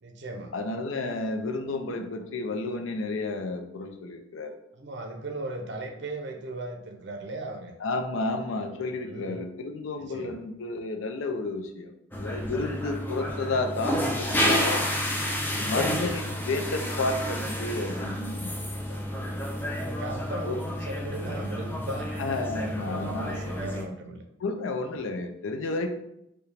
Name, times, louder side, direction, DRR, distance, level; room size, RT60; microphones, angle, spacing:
voice 1, 0.0-0.5 4.7-7.7 8.8-9.5 10.0-10.4 12.5-12.7 15.4-15.7 19.1-19.4 19.8-22.1 22.6-24.2, right 2 dB, 60° right, 4 dB, 0.5 m, -38 dB
voice 2, 0.5-4.5 7.8-14.9 15.6-18.6 18.9-19.0 20.4-20.6 22.2-23.9 24.4-25.9, left 3 dB, 80° left, 6 dB, 0.5 m, -31 dB
sound 1, 12.1-23.8, equal, 10° left, 0.3 m, -30 dB
4.6 x 2.2 x 3.3 m, 0.83 s
head